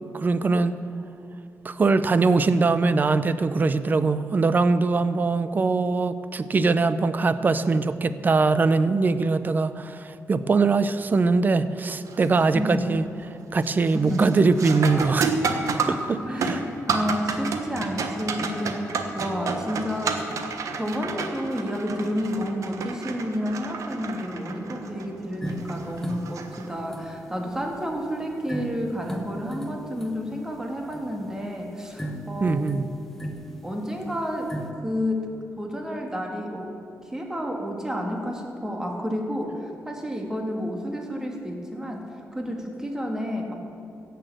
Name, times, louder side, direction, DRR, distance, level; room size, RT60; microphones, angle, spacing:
voice 1, 0.1-0.8 1.6-13.0 13.5-15.6 15.9-16.6 32.4-32.9, right 4 dB, 35° right, 13 dB, 0.5 m, -22 dB
sound 1, 12.1-12.4 12.9-13.3 13.6-27.1 29.7-29.8 30.6-30.8, right 4 dB, 70° right, 1.2 m, -31 dB
voice 2, 13.9-14.3 16.2-32.7 33.6-35.3 35.6-36.8 37.1-42.1 42.3-43.5, equal, 10° right, 1 dB, 1.9 m, -30 dB
sound 2, 25.4-34.7, right 1 dB, 5° left, 1.1 m, -39 dB
16.0 x 6.9 x 7.8 m, 2.5 s
wide cardioid pair, 130°, 6 cm